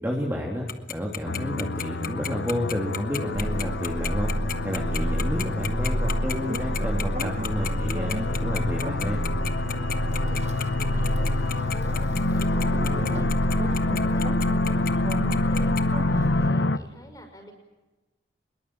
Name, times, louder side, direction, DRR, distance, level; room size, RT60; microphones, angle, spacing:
voice 1, 0.0-4.3 4.6-9.2, equal, 10° right, -1 dB, 3.3 m, -30 dB
Tick-tock, 0.7-15.8, left 9 dB, 50° left, 1.4 m, -32 dB
sound 1, 1.2-16.8, left 2 dB, 90° left, 1.0 m, -28 dB
sound 2, 3.3-16.5, right 1 dB, 40° right, 1.1 m, -29 dB
voice 2, 10.1-10.5 10.7-17.5, equal, 20° left, 5 dB, 6.1 m, -46 dB
24.5 x 22.0 x 9.1 m, 1.1 s
head